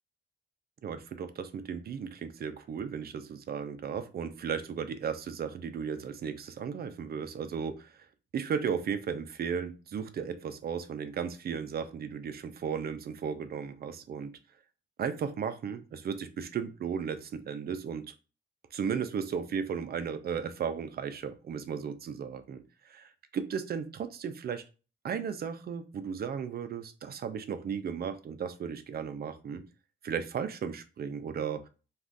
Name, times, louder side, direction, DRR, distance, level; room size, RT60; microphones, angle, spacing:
voice 1, 0.8-8.1 8.3-14.3 15.0-18.1 18.7-24.6 25.0-29.6 30.0-31.6, right 7 dB, 50° right, 11 dB, 0.5 m, -35 dB
2.5 x 2.4 x 3.4 m, 0.34 s
cardioid pair, 100°, 20 cm